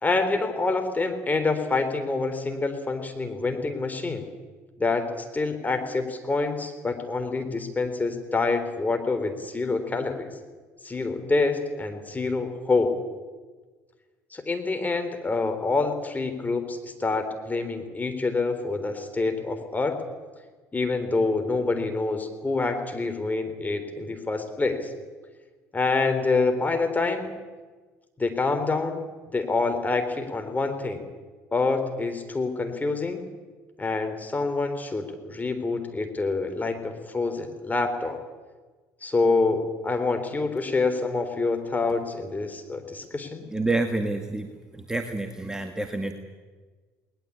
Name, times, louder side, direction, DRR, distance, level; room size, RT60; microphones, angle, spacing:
voice 1, 0.0-4.3 4.8-10.3 10.8-13.0 14.3-20.0 20.7-24.9 25.7-27.3 28.2-29.0 29.3-31.0 31.5-33.2 33.8-38.2 39.0-43.4, left 3 dB, 20° left, 6 dB, 3.8 m, -26 dB
voice 2, 43.5-44.5 44.7-46.1, right 2 dB, 10° right, 6 dB, 1.9 m, -28 dB
20.0 x 19.5 x 8.6 m, 1.4 s
hypercardioid pair, 60°, 8 cm